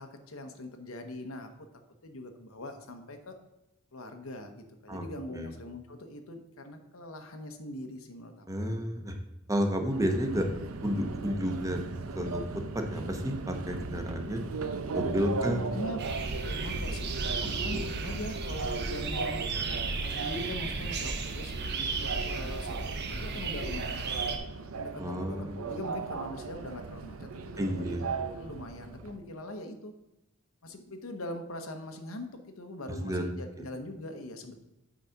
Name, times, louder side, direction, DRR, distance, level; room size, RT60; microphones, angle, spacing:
voice 1, 0.0-1.7 2.0-3.4 3.9-8.7 15.4-19.4 20.0-21.6 21.9-22.8 23.1-24.2 24.7-29.9 30.6-34.6, left 1 dB, 90° left, 6 dB, 1.0 m, -42 dB
voice 2, 8.5-9.1 9.5-10.5 10.8-12.4 12.7-14.4 14.9-15.6 17.7-17.9 25.0-25.6 27.6-28.1 33.0-33.3, equal, 15° right, 4 dB, 0.9 m, -31 dB
Subway metro underground, 9.9-29.1, right 4 dB, 80° right, 0.6 m, -38 dB
sound 1, 16.0-24.4, right 4 dB, 55° right, 0.9 m, -34 dB
8.6 x 4.1 x 5.8 m, 0.91 s
head